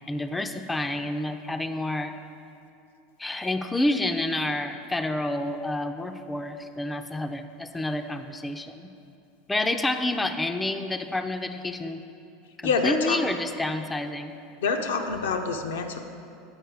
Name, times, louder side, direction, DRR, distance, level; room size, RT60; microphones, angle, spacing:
voice 1, 0.0-2.1 3.2-8.9 9.5-12.0 12.6-14.3, left 2 dB, 10° left, 7 dB, 0.4 m, -29 dB
voice 2, 12.6-13.2 14.6-16.0, left 5 dB, 80° left, 5 dB, 0.5 m, -26 dB
7.9 x 4.4 x 4.6 m, 2.6 s
hypercardioid pair, 85°, 0 cm